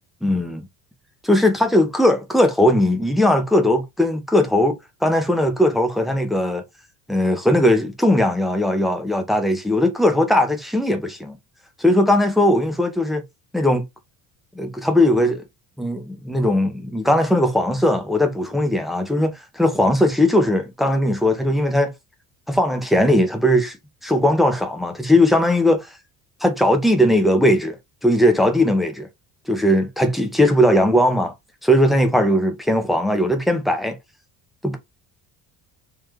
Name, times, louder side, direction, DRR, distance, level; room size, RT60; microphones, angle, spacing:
voice 1, 0.2-0.7 1.2-4.8 5.0-6.6 7.1-11.4 11.8-13.2 13.5-13.8 14.6-15.4 15.8-21.9 22.5-23.8 24.0-25.9 26.4-27.8 28.0-29.1 29.5-31.3 31.6-34.0 34.6-34.8, left 1 dB, ahead, 0.5 m, -18 dB
3.7 x 3.1 x 3.0 m
cardioid pair, 180°, 37 cm